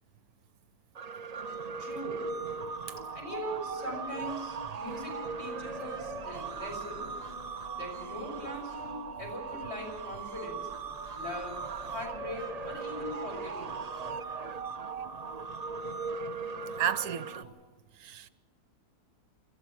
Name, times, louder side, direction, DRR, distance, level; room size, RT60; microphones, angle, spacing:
sound 1, 0.9-17.4, right 5 dB, 90° right, 0.3 m, -39 dB
voice 1, 1.8-2.2 3.1-7.1 7.7-10.7 11.1-11.6 11.9-13.9, left 1 dB, 40° left, 6.4 m, -40 dB
sound 2, 5.0-17.5, right 1 dB, 25° left, 5.4 m, -51 dB
voice 2, 16.8-17.5 18.0-18.3, right 9 dB, 70° right, 1.2 m, -32 dB
28.5 x 14.5 x 6.3 m
omnidirectional pair, 1.7 m